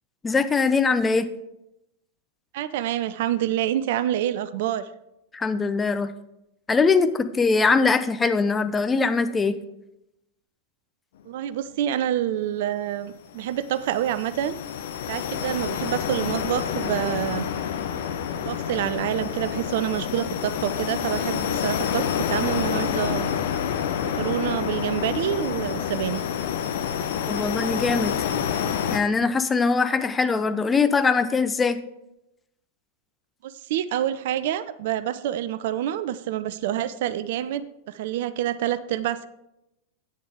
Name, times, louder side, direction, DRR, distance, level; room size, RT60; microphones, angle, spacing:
voice 1, 0.2-1.3 5.3-6.1 6.7-9.6 27.3-28.1 28.9-31.8, left 4 dB, 15° left, 10 dB, 0.6 m, -22 dB
voice 2, 2.5-4.9 11.3-14.6 15.1-17.5 18.4-23.3 24.0-26.2 33.4-39.3, right 11 dB, 55° right, 15 dB, 0.4 m, -27 dB
sound 1, 13.3-29.0, left 8 dB, 55° left, 0.8 m, -28 dB
11.0 x 8.7 x 3.6 m, 0.87 s
figure-of-eight pair, 90°, 0 cm